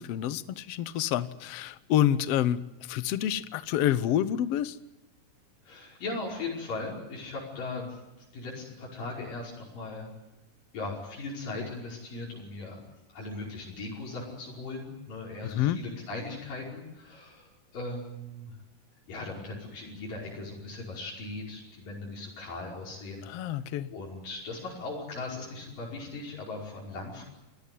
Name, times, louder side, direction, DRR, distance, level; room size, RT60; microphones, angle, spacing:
voice 1, 0.0-4.8 15.4-15.8 23.3-23.9, left 11 dB, 65° left, 14 dB, 1.6 m, -28 dB
voice 2, 5.6-8.0 8.3-10.1 10.7-18.6 19.1-23.6 23.9-27.2, left 3 dB, 90° left, -4 dB, 7.0 m, -38 dB
28.5 x 19.0 x 9.3 m, 1.0 s
omnidirectional pair, 3.8 m